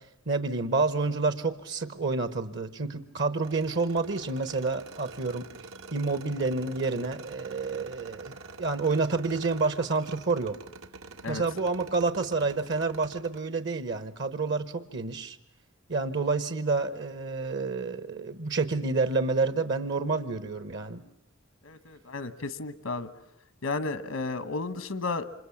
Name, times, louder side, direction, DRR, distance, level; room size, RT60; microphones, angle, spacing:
voice 1, 0.3-5.5 5.9-10.6 11.3-15.4 15.9-21.0, right 3 dB, 60° right, 13 dB, 1.1 m, -29 dB
sound 1, 3.4-13.4, right 3 dB, 85° right, 1.6 m, -46 dB
voice 2, 21.6-23.1 23.6-25.2, left 3 dB, 90° left, 13 dB, 1.2 m, -33 dB
28.0 x 26.0 x 7.2 m, 0.73 s
head